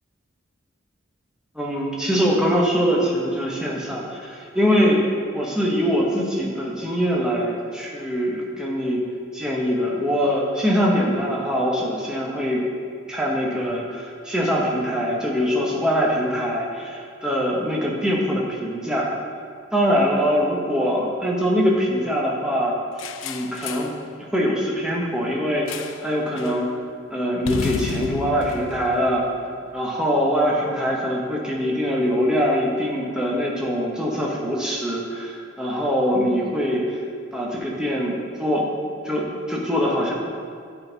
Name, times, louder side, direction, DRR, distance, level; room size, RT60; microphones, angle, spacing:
voice 1, 1.5-5.0 5.3-9.0 9.3-12.6 13.1-19.1 19.7-22.8 23.2-23.9 24.2-26.7 27.1-29.3 29.7-37.0 37.3-38.7 39.0-40.1, equal, 5° right, -4 dB, 0.9 m, -23 dB
sound 1, 23.0-24.0 25.7-26.1 26.4-26.6 27.4-29.8, left 6 dB, 70° left, 0.3 m, -32 dB
9.6 x 3.9 x 3.9 m, 2.3 s
head